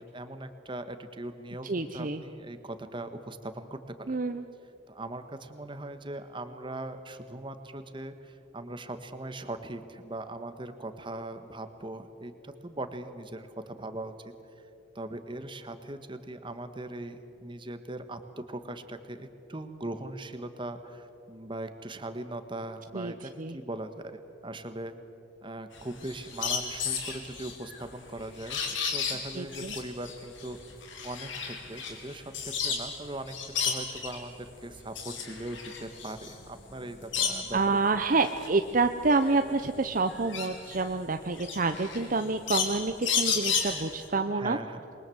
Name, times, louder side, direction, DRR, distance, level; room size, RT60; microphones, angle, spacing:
voice 1, 0.0-4.2 4.9-14.3 14.9-24.9 25.4-30.6 31.0-38.0 44.3-44.8, right 1 dB, 25° right, 9 dB, 1.5 m, -40 dB
voice 2, 1.6-2.2 4.1-4.4 22.9-23.6 29.4-29.7 37.5-44.6, right 3 dB, 45° right, 8 dB, 0.8 m, -28 dB
sound 1, 25.7-33.0 33.3-34.2 34.7-37.6 38.1-44.1, left 6 dB, 80° left, 3.9 m, -33 dB
27.5 x 22.0 x 7.9 m, 2.8 s
head